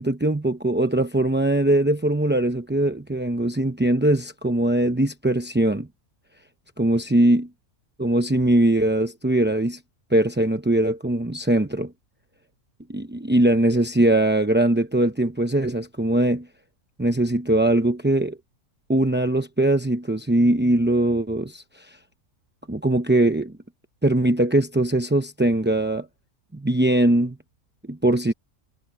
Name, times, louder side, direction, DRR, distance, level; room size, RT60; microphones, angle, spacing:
voice 1, 0.0-5.9 6.8-7.5 8.0-9.8 10.1-11.9 12.9-16.5 17.0-18.4 18.9-21.9 22.7-23.5 24.0-26.1 26.5-27.4 27.9-28.3, right 1 dB, 15° right, 0.4 m, -21 dB
omnidirectional pair, 1.6 m